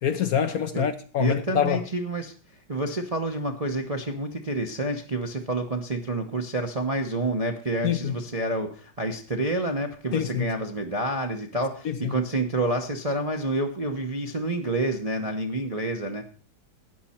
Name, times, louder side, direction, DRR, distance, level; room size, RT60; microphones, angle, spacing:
voice 1, 0.0-1.8 7.8-8.2 10.1-10.5 11.8-12.1, left 8 dB, 60° left, 1.0 m, -25 dB
voice 2, 1.2-16.2, right 2 dB, 35° right, 0.6 m, -28 dB
13.5 x 9.5 x 4.3 m
omnidirectional pair, 2.2 m